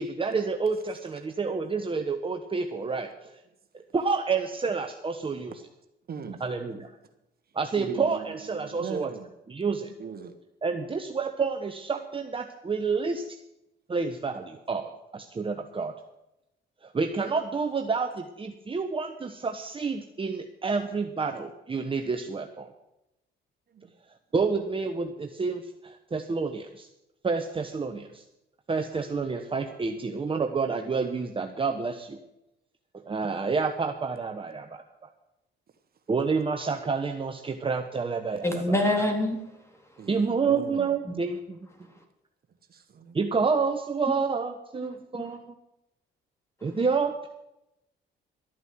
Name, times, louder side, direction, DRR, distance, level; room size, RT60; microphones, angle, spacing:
voice 1, 0.0-3.4 3.9-5.5 6.4-7.0 7.5-9.1 9.5-9.9 10.6-13.2 13.9-15.9 16.8-22.7 24.3-26.9 27.2-28.2 28.7-32.2 32.9-35.1 36.1-38.6 40.1-41.6 43.1-45.5 46.6-47.3, right 4 dB, 25° right, 1.1 m, -29 dB
voice 2, 6.1-6.4 7.8-9.3 10.0-10.3 23.7-23.9 40.0-40.9 42.7-43.2, right 6 dB, 50° right, 1.4 m, -39 dB
voice 3, 38.4-39.4 41.1-41.2 44.1-44.2 44.8-45.3 46.7-46.8, left 1 dB, 15° left, 3.3 m, -27 dB
13.0 x 9.2 x 7.8 m
cardioid pair, 90°, 20 cm